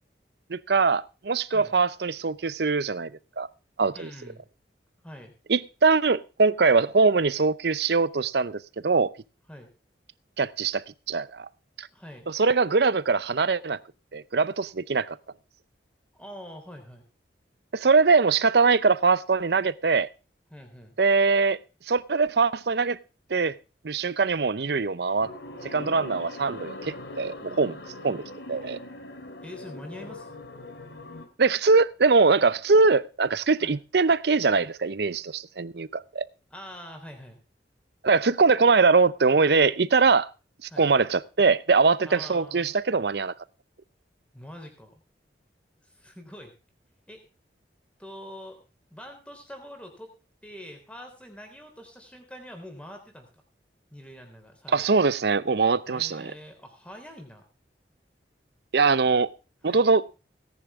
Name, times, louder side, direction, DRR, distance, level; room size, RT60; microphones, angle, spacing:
voice 1, 0.5-3.1 3.4-3.5 3.8-4.1 5.5-9.1 10.4-11.5 11.8-11.9 12.3-13.8 14.1-15.2 17.7-20.1 21.0-21.6 21.9-23.0 23.3-23.5 23.8-25.3 25.6-27.8 28.0-28.2 28.5-28.8 31.4-36.2 38.0-40.3 40.6-43.3 54.7-56.3 58.7-59.3 59.6-60.0, right 4 dB, 65° right, 0.6 m, -22 dB
voice 2, 3.9-4.4 5.0-5.3 9.5-9.7 11.9-12.3 16.1-17.1 20.5-21.0 29.4-30.4 33.6-33.8 36.5-37.4 40.7-40.9 42.1-42.8 44.3-45.0 45.8-46.5 47.1-47.2 48.0-48.6 48.9-50.1 50.4-53.3 53.9-54.9 55.9-57.4 59.0-59.1 59.7-59.8, equal, 5° left, 3.5 m, -44 dB
sound 1, 25.2-31.3, left 2 dB, 75° left, 2.4 m, -41 dB
18.0 x 10.5 x 3.6 m
head